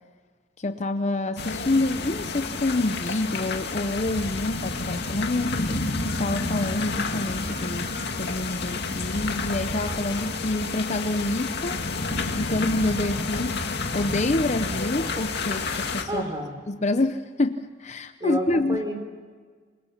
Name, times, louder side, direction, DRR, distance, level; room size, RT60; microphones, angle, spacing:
voice 1, 0.6-5.8 6.2-7.9 8.2-11.9 12.4-13.6 13.9-16.2 16.7-18.8, left 2 dB, 35° left, 9 dB, 0.7 m, -27 dB
sound 1, 1.4-16.0, left 3 dB, 55° left, 2.3 m, -30 dB
voice 2, 16.1-16.6 18.2-18.9, equal, 20° right, 4 dB, 4.2 m, -30 dB
29.0 x 24.5 x 5.8 m, 1.5 s
head